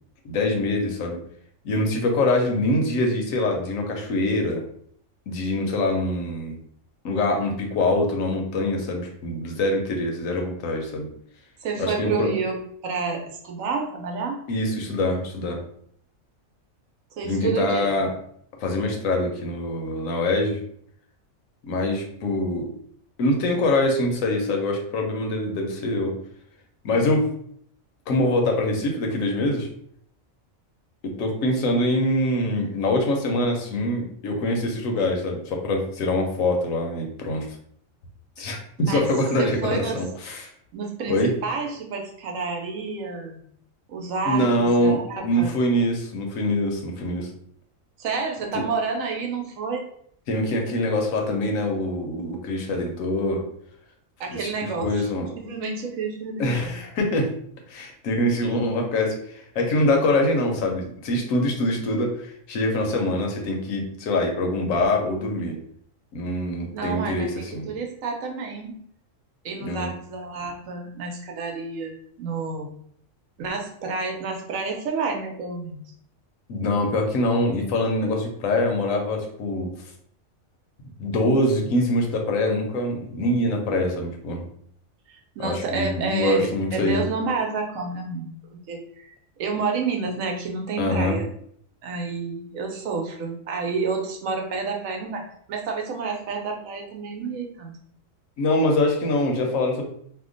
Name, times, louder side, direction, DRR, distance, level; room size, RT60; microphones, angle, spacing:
voice 1, 0.2-1.2 1.6-4.6 5.3-6.6 7.0-11.1 11.8-12.3 14.5-15.6 17.2-18.1 18.6-20.6 21.6-22.7 23.2-26.1 26.8-27.3 28.1-29.7 31.0-37.5 38.4-40.5 41.1-41.3 44.2-47.3 50.3-53.4 54.3-55.3 56.4-57.3 57.7-65.6 66.1-67.7 69.6-69.9 76.5-79.7 81.0-84.4 85.4-87.0 90.8-91.2 98.4-99.8, left 1 dB, 75° left, 2 dB, 1.1 m, -24 dB
voice 2, 11.6-12.6 12.8-14.4 17.2-17.9 38.8-39.0 39.4-40.0 40.7-43.4 43.9-45.5 48.0-49.8 54.2-55.0 55.4-56.7 66.7-68.8 69.4-72.7 73.4-75.8 85.4-89.1 89.4-91.3 91.8-95.2 95.5-97.7, right 4 dB, 80° right, 2 dB, 1.1 m, -29 dB
2.8 x 2.1 x 3.7 m, 0.65 s
omnidirectional pair, 1.4 m